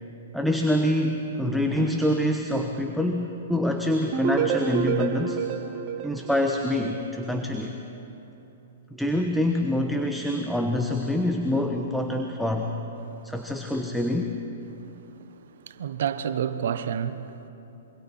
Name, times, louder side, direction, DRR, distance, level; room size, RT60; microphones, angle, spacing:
voice 1, 0.3-5.4 6.0-7.8 8.9-12.7 13.2-14.3, left 1 dB, ahead, 1.2 m, -26 dB
sound 1, 4.1-7.1, right 7 dB, 40° right, 1.7 m, -28 dB
voice 2, 15.6-17.5, right 8 dB, 60° right, 1.0 m, -29 dB
26.5 x 24.0 x 4.3 m
figure-of-eight pair, 115°, 0 cm